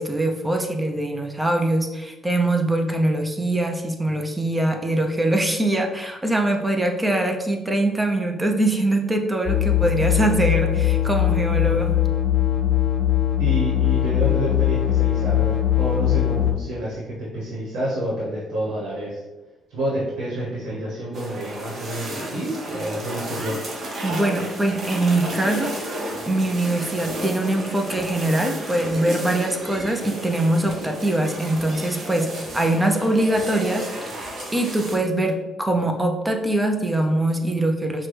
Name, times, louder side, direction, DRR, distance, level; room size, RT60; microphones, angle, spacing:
voice 1, 0.0-11.9 24.0-25.7 26.3-38.1, right 1 dB, 15° right, 4 dB, 0.6 m, -23 dB
sound 1, 9.5-16.5, left 12 dB, 65° left, 0.4 m, -21 dB
voice 2, 13.4-19.2 19.7-23.6, right 1 dB, 80° right, -6 dB, 1.1 m, -29 dB
sound 2, 21.1-35.0, right 1 dB, 55° right, 1.0 m, -32 dB
5.7 x 2.2 x 3.3 m, 1.1 s
cardioid pair, 90°, 0 cm